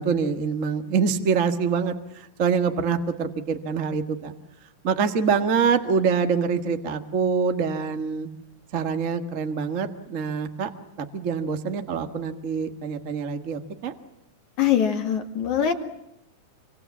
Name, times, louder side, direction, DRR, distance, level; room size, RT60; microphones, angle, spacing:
voice 1, 0.0-4.3 4.8-8.3 8.7-10.7 11.0-13.9, right 6 dB, 45° right, 7 dB, 1.0 m, -25 dB
voice 2, 14.6-15.7, left 9 dB, 60° left, 6 dB, 3.1 m, -22 dB
26.0 x 26.0 x 7.2 m, 0.84 s
omnidirectional pair, 4.1 m